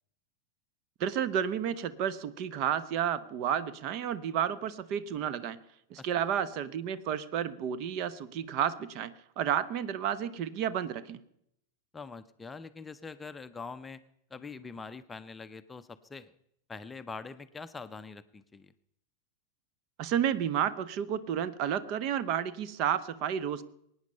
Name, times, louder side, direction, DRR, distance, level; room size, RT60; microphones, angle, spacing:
voice 1, 1.0-5.6 5.9-11.2 20.0-23.6, right 9 dB, 40° right, 16 dB, 0.9 m, -31 dB
voice 2, 11.9-14.0 14.3-16.3 16.7-18.7, left 4 dB, 15° left, 11 dB, 0.6 m, -44 dB
23.5 x 9.6 x 5.5 m, 0.75 s
figure-of-eight pair, 90°, 0 cm